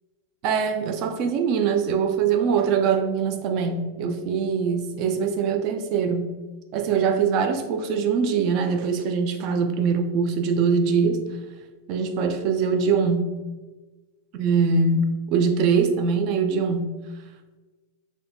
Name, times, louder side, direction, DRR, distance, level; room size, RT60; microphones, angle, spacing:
voice 1, 0.4-6.3 6.7-11.2 11.9-13.3 14.3-16.9, right 5 dB, 40° right, 6 dB, 0.3 m, -23 dB
3.3 x 2.1 x 2.5 m, 1.2 s
figure-of-eight pair, 90°, 0 cm